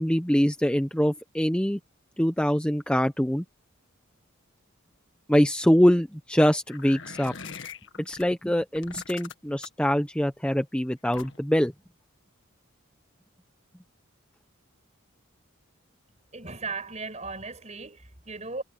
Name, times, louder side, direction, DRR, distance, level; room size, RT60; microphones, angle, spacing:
voice 1, 0.0-1.8 2.2-3.4 5.3-7.3 8.0-11.7, equal, 5° left, 0.9 m, -24 dB
sound 1, 6.7-8.3 8.7-9.9 11.1-11.6, left 5 dB, 60° left, 1.9 m, -42 dB
voice 2, 16.3-18.6, right 4 dB, 35° right, 5.7 m, -37 dB
head